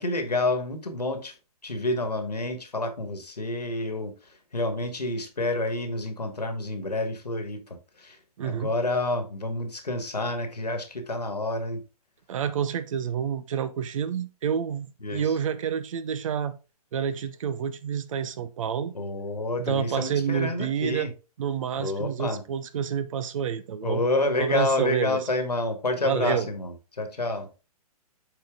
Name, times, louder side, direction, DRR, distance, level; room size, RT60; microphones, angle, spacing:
voice 1, 0.0-1.3 1.6-4.1 4.5-8.2 8.4-11.8 15.0-15.3 18.9-21.1 21.8-22.4 23.8-27.5, left 2 dB, 90° left, 1.7 m, -29 dB
voice 2, 8.4-8.7 12.3-16.5 16.9-18.9 19.6-21.1 21.4-24.0 24.4-25.2 26.0-26.5, right 8 dB, 55° right, 0.9 m, -29 dB
7.6 x 4.6 x 3.6 m
figure-of-eight pair, 125°, 20 cm